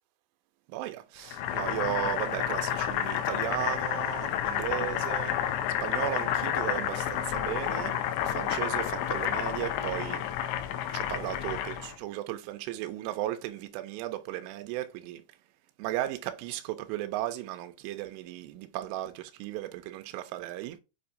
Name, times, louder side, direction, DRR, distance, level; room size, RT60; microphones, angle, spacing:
voice 1, 0.7-5.3 5.8-7.9 8.3-10.2 10.9-15.2 15.8-20.8, right 14 dB, 90° right, 2.7 m, -35 dB
Boiling, 1.3-12.0, left 10 dB, 80° left, 2.7 m, -30 dB
7.5 x 2.6 x 4.9 m
omnidirectional pair, 4.8 m